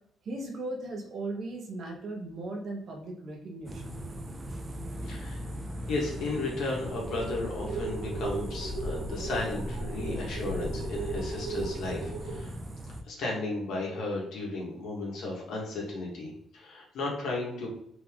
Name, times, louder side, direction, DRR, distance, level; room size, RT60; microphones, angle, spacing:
voice 1, 0.2-4.0, right 2 dB, 60° right, 1 dB, 1.2 m, -37 dB
sound 1, 3.7-13.0, equal, 25° right, 0.6 m, -39 dB
voice 2, 5.0-5.4 5.9-12.6 13.0-17.7, left 2 dB, 75° left, -2 dB, 1.5 m, -34 dB
sound 2, 6.9-12.4, right 3 dB, 85° right, 0.7 m, -36 dB
3.8 x 3.4 x 3.6 m, 0.71 s
cardioid pair, 90°, 0 cm